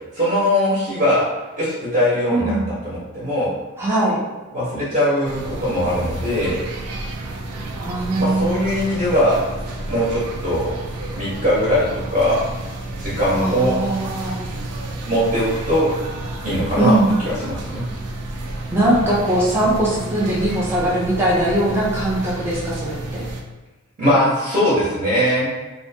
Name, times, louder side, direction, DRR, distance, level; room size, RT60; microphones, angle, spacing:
voice 1, 0.1-1.3 1.6-3.5 4.5-6.6 8.1-9.4 9.9-10.7 11.1-12.4 13.0-13.7 15.0-15.9 16.4-17.0 17.2-17.8 24.0-25.5, equal, 35° right, -9 dB, 0.7 m, -20 dB
voice 2, 2.3-2.7 3.8-4.2 7.8-8.5 13.3-14.4 16.8-17.1 18.7-23.2, right 1 dB, 10° right, -6 dB, 0.4 m, -20 dB
sound 1, 5.2-23.4, right 2 dB, 80° right, 0.4 m, -31 dB
2.5 x 2.1 x 2.6 m, 1.2 s
head